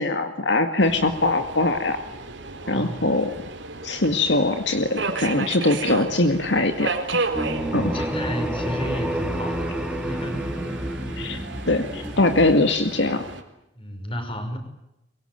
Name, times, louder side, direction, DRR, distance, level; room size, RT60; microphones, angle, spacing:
voice 1, 0.0-2.0 2.7-3.3 3.8-6.9 7.7-8.0 11.2-11.4 11.6-13.2, left 2 dB, 70° left, 7 dB, 2.1 m, -22 dB
Subway metro underground, 0.8-13.4, right 3 dB, 85° right, 4.1 m, -33 dB
voice 2, 2.6-3.0 7.6-9.7 10.0-10.6 11.1-11.5 13.7-14.6, equal, 30° left, 7 dB, 5.7 m, -33 dB
sound 1, 7.3-12.5, right 1 dB, 5° right, 2.8 m, -29 dB
24.5 x 23.0 x 9.4 m, 0.86 s
head